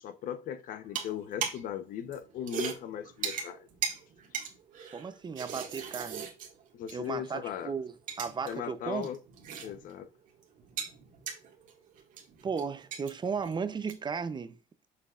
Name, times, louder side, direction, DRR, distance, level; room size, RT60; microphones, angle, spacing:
voice 1, 0.0-3.7 6.7-7.7 8.5-9.2 9.6-10.1, left 9 dB, 75° left, 0.9 m, -38 dB
sound 1, 0.8-1.7 2.0-7.1 7.4-7.5 7.9-8.5 8.8-10.0 10.3-14.1, right 7 dB, 70° right, 1.9 m, -39 dB
voice 2, 4.9-6.3 6.9-9.1 12.4-14.6, right 5 dB, 30° right, 0.6 m, -35 dB
7.0 x 6.7 x 2.5 m
cardioid pair, 95°, 14 cm